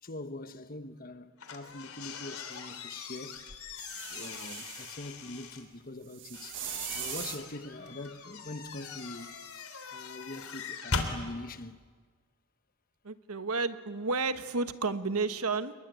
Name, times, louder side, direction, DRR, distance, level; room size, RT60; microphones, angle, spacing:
voice 1, 0.0-3.8 4.1-6.6 6.9-9.4 9.9-11.8, left 2 dB, 40° left, 1.2 m, -43 dB
sound 1, 1.4-5.6 6.3-11.2, left 4 dB, 75° left, 3.4 m, -40 dB
sound 2, 3.8-5.0 6.1-7.4 9.6-9.7, right 11 dB, 55° right, 1.9 m, -40 dB
voice 2, 13.0-15.7, right 3 dB, 80° right, 1.3 m, -31 dB
28.5 x 21.0 x 9.3 m
head